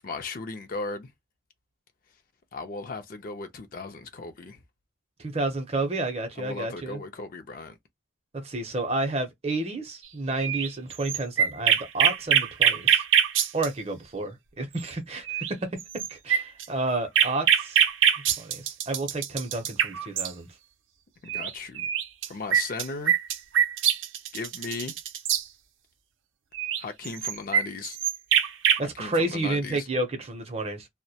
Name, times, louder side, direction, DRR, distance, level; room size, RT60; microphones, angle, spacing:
voice 1, 0.0-1.1 2.5-4.6 6.4-7.8 21.2-21.9 22.3-23.1 24.3-25.0 26.8-28.0 28.8-29.9, left 3 dB, 45° left, 0.4 m, -36 dB
voice 2, 5.2-7.0 8.3-13.0 13.5-15.7 15.9-17.8 18.4-20.5 28.8-30.9, right 2 dB, 30° right, 0.6 m, -30 dB
sound 1, 10.4-13.7 14.9-15.0 15.3-15.5 15.8-20.3 21.3-21.5 21.8-25.4 26.5-28.8, right 9 dB, 85° right, 0.5 m, -23 dB
2.2 x 2.1 x 2.7 m
head